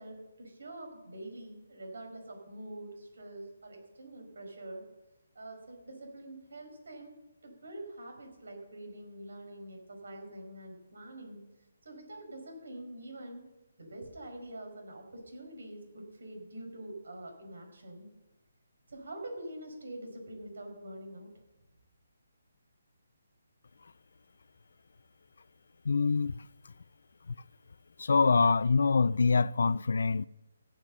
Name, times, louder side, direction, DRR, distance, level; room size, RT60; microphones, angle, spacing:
voice 1, 0.0-4.9 5.4-7.1 7.4-11.4 11.8-13.4 13.8-18.1 18.9-21.3, right 1 dB, 70° right, 5.2 m, -45 dB
voice 2, 25.8-26.5 27.3-27.4 28.0-30.2, left 4 dB, 65° left, 0.4 m, -25 dB
17.5 x 7.4 x 6.7 m
hypercardioid pair, 175°, 0 cm